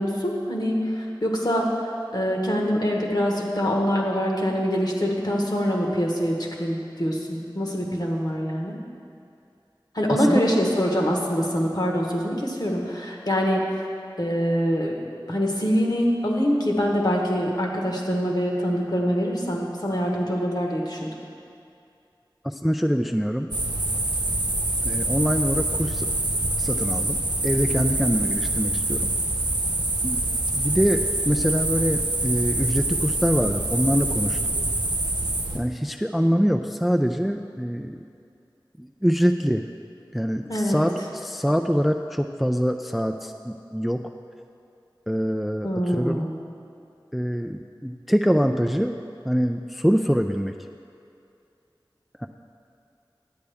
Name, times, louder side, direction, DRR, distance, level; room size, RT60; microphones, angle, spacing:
voice 1, 0.0-1.8 2.1-8.8 9.9-13.7 14.2-14.9 15.3-21.1 40.5-40.8 45.6-46.3, equal, 55° left, -1 dB, 1.3 m, -24 dB
voice 2, 10.1-10.4 22.4-23.5 24.8-26.1 26.6-27.2 27.4-29.1 30.0-30.2 30.6-34.4 35.5-38.1 38.8-39.7 40.1-44.1 45.1-46.2 47.1-49.0 49.2-50.5 52.2-52.3, equal, ahead, 5 dB, 0.3 m, -24 dB
sound 1, 23.5-35.6, right 2 dB, 60° right, 0.8 m, -25 dB
10.5 x 8.3 x 3.5 m, 2.5 s
wide cardioid pair, 40°, 8 cm